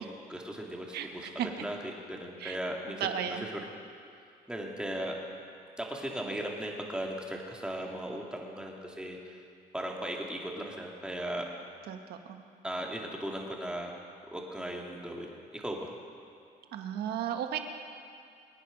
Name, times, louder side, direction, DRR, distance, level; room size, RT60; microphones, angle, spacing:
voice 1, 0.0-1.3 1.6-3.5 4.5-5.2 5.8-9.4 9.7-11.5 12.6-13.9 14.3-15.3 15.5-15.9, right 1 dB, 5° right, -1 dB, 2.3 m, -37 dB
voice 2, 0.9-1.5 2.4-2.6 3.0-3.5 11.9-12.4 16.7-17.6, right 9 dB, 75° right, 6 dB, 1.4 m, -34 dB
24.0 x 9.7 x 5.2 m, 2.4 s
cardioid pair, 110°, 17 cm